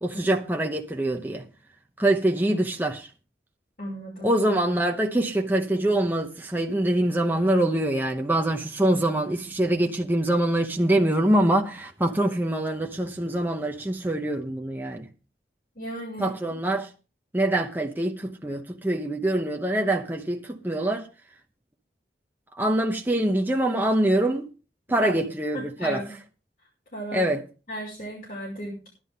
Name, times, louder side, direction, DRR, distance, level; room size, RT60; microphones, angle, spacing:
voice 1, 0.0-1.4 2.0-3.1 4.2-15.1 16.2-16.9 17.3-21.1 22.5-24.5 24.9-26.0 27.1-27.4, right 1 dB, 10° right, 0.8 m, -24 dB
voice 2, 3.8-4.3 15.8-16.3 25.0-25.3 25.5-26.0 26.9-27.3 27.7-28.9, equal, 55° left, 5.4 m, -34 dB
15.5 x 11.0 x 3.7 m
head